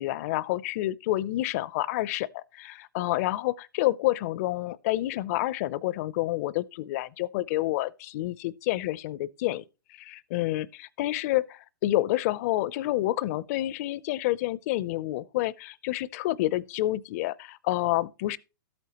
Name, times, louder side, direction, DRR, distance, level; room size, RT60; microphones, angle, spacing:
voice 1, 0.0-9.6 10.0-18.4, left 16 dB, 45° left, 0.5 m, -29 dB
13.0 x 8.6 x 2.9 m
hypercardioid pair, 130°, 11 cm